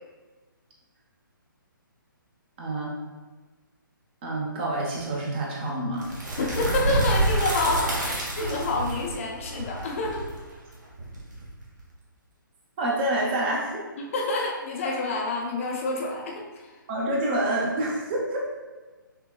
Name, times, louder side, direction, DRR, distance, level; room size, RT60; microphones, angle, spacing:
voice 1, 2.6-2.9 4.2-6.1 12.8-13.8 16.9-18.4, right 1 dB, 30° right, -3 dB, 0.7 m, -27 dB
sound 1, 6.0-11.8, right 2 dB, 55° right, 1.2 m, -28 dB
voice 2, 6.4-10.2 14.0-16.8, left 3 dB, 35° left, -1 dB, 0.5 m, -28 dB
5.6 x 2.2 x 2.4 m, 1.3 s
figure-of-eight pair, 135°, 12 cm